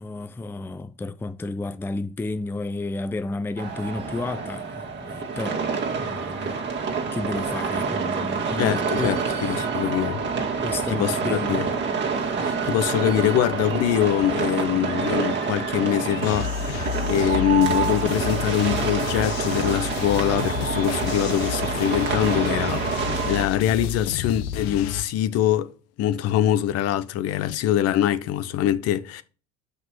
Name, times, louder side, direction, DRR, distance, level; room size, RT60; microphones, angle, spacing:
voice 1, 0.0-5.6 6.0-6.7 7.1-9.6 10.6-11.7, left 2 dB, 5° left, 0.5 m, -32 dB
sound 1, 3.6-23.5, right 5 dB, 35° right, 2.0 m, -27 dB
voice 2, 8.6-10.2 10.9-11.7 12.4-29.2, left 11 dB, 55° left, 1.0 m, -24 dB
sound 2, 16.2-25.0, left 9 dB, 85° left, 1.1 m, -31 dB
6.0 x 5.3 x 6.2 m
supercardioid pair, 95°, 30 cm